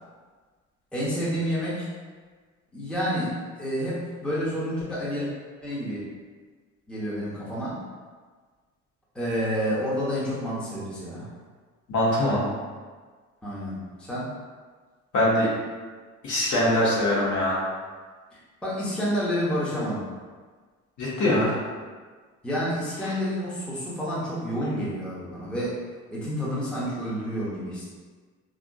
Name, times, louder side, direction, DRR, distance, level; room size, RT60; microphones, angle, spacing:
voice 1, 0.9-1.9 2.7-5.3 5.6-6.1 6.9-7.8 9.1-11.3 13.4-14.3 18.6-20.1 22.4-25.8 26.1-27.9, equal, ahead, -8 dB, 0.9 m, -29 dB
voice 2, 11.9-12.4 15.1-15.5 16.2-17.6 21.0-21.5, left 1 dB, 45° left, -6 dB, 1.1 m, -22 dB
3.5 x 2.5 x 2.3 m, 1.5 s
figure-of-eight pair, 50°, 41 cm